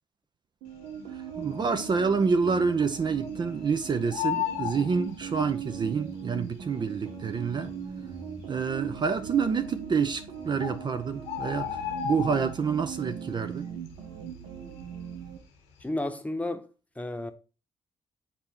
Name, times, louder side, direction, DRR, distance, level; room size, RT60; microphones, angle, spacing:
sound 1, 0.6-15.4, right 7 dB, 65° right, 1.0 m, -39 dB
voice 1, 1.1-7.7 8.5-13.7, right 5 dB, 40° right, 0.6 m, -28 dB
Bird, 1.2-1.8 2.1-2.2 2.5-3.7 3.9-5.8 6.6-6.7 7.3-7.4 7.6-7.8 8.4-8.9 9.8-9.9 10.3-10.4 10.6-12.9 13.2-13.5 13.9-15.2 15.6-15.8, left 10 dB, 75° left, 1.0 m, -34 dB
voice 2, 15.8-16.7 17.0-17.3, left 1 dB, 10° left, 0.9 m, -32 dB
8.5 x 4.2 x 2.9 m
figure-of-eight pair, 40°, 12 cm